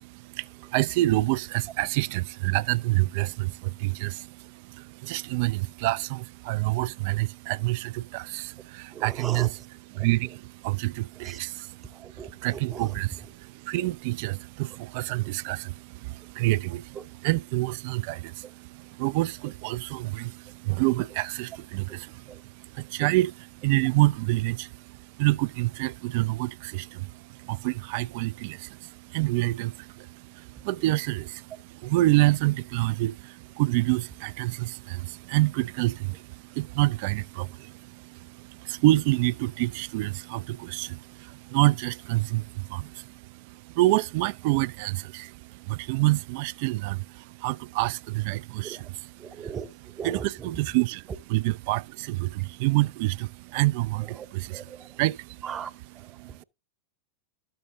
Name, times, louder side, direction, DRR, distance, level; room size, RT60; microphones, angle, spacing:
voice 1, 0.0-9.6 9.9-49.6 50.0-55.5 56.2-56.4, right 19 dB, 50° right, 0.3 m, -28 dB
voice 2, 8.9-9.5 9.9-10.1 11.2-11.4 11.9-12.9 16.9-17.0 21.9-22.0 22.3-22.4 48.6-48.8 49.2-49.7 50.0-50.5 54.1-55.0 55.4-56.3, right 7 dB, 25° right, 0.7 m, -39 dB
13.0 x 6.5 x 2.6 m
figure-of-eight pair, 90°, 0 cm